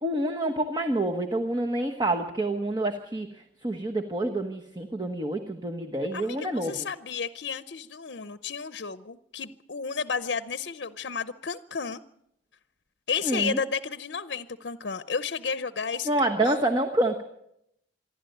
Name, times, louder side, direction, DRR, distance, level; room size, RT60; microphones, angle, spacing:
voice 1, 0.0-6.9 13.2-13.6 16.0-17.2, right 1 dB, 25° right, 4 dB, 1.2 m, -27 dB
voice 2, 6.1-12.0 13.1-16.6, left 5 dB, 60° left, 13 dB, 0.7 m, -32 dB
26.5 x 11.5 x 9.1 m, 0.79 s
head